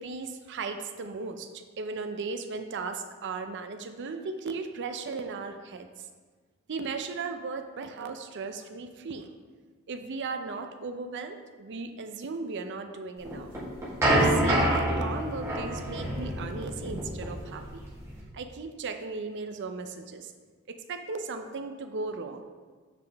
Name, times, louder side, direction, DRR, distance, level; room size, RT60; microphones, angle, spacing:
voice 1, 0.0-6.1 6.7-9.3 9.9-13.5 14.1-17.8 18.3-20.3 20.7-22.4, right 4 dB, 55° right, 7 dB, 0.5 m, -36 dB
sound 1, 13.2-18.2, right 1 dB, 15° right, 1.7 m, -27 dB
6.7 x 5.2 x 3.4 m, 1.4 s
head